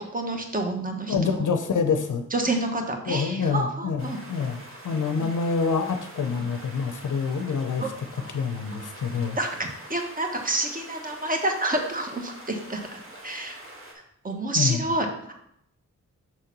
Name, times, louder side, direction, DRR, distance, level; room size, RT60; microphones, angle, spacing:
voice 1, 0.1-1.5 2.3-4.2 5.2-5.3 7.8-7.9 8.9-9.0 9.4-13.6 14.2-15.3, right 2 dB, 25° right, 3 dB, 1.2 m, -29 dB
voice 2, 1.1-2.2 3.1-4.6 4.8-7.8 8.3-9.4 14.6-14.8, left 5 dB, 75° left, 7 dB, 0.6 m, -26 dB
sound 1, 4.0-13.9, right 1 dB, 45° right, 1.9 m, -45 dB
6.1 x 3.8 x 6.0 m, 0.74 s
wide cardioid pair, 80°, 31 cm